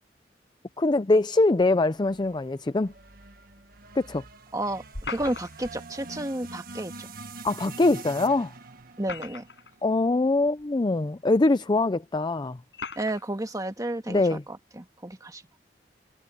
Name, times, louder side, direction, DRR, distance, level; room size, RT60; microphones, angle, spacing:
voice 1, 0.8-2.9 4.0-4.2 7.4-8.5 9.8-12.6 14.1-14.4, left 2 dB, 25° left, 0.5 m, -23 dB
sound 1, 2.0-10.3, right 3 dB, 55° right, 1.6 m, -45 dB
voice 2, 4.5-4.8 5.1-7.1 9.0-9.4 12.9-15.4, right 1 dB, 20° right, 1.7 m, -32 dB
sound 2, 4.9-5.8 7.5-7.6 8.8-9.7 10.6-10.7 11.7-11.8 12.7-13.2, left 4 dB, 75° left, 7.4 m, -38 dB
head